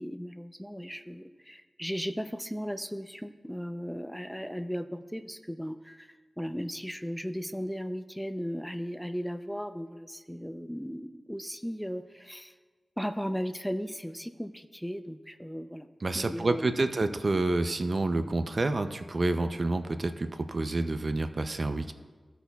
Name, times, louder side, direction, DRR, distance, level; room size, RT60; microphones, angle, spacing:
voice 1, 0.0-12.5 13.0-15.9 16.1-16.8, equal, ahead, 10 dB, 0.5 m, -36 dB
voice 2, 16.0-21.9, right 2 dB, 50° right, 9 dB, 0.5 m, -28 dB
15.5 x 8.2 x 2.3 m, 1.5 s
wide cardioid pair, 60°, 0 cm